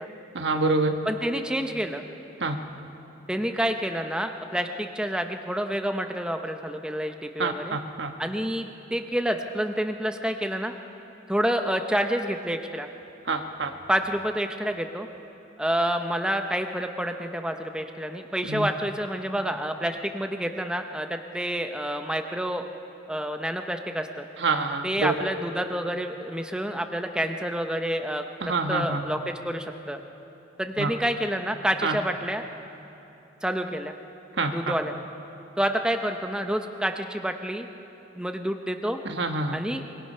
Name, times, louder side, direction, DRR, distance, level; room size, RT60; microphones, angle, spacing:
voice 1, 0.3-1.0 2.4-2.6 7.4-8.1 13.3-13.7 18.5-18.7 24.4-25.1 28.5-29.0 30.8-30.9 31.8-32.0 34.4-34.6 39.0-39.6, right 3 dB, 70° right, 5 dB, 1.3 m, -26 dB
voice 2, 1.1-2.0 3.3-7.8 8.2-10.7 11.3-12.9 13.9-15.1 15.6-22.7 23.1-24.3 24.8-30.0 30.6-32.4 33.4-33.9 34.5-35.1 35.6-37.7 38.2-39.0 39.5-39.8, equal, 5° right, 5 dB, 0.7 m, -28 dB
25.0 x 22.0 x 5.6 m, 2.9 s
head